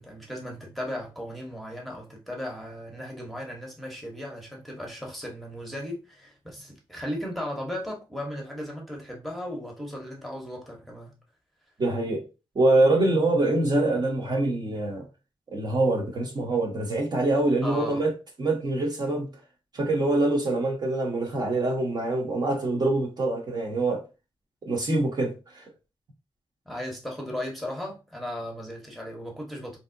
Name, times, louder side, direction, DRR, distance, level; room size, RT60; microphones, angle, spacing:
voice 1, 0.0-11.1 17.6-18.0 26.7-29.8, equal, ahead, 0.9 m, -36 dB
voice 2, 11.8-12.2 12.5-15.0 15.5-18.1 18.4-19.3 19.7-24.0 24.6-25.6, right 2 dB, 45° right, 0.9 m, -24 dB
3.3 x 2.8 x 2.6 m
wide cardioid pair, 120°, 10 cm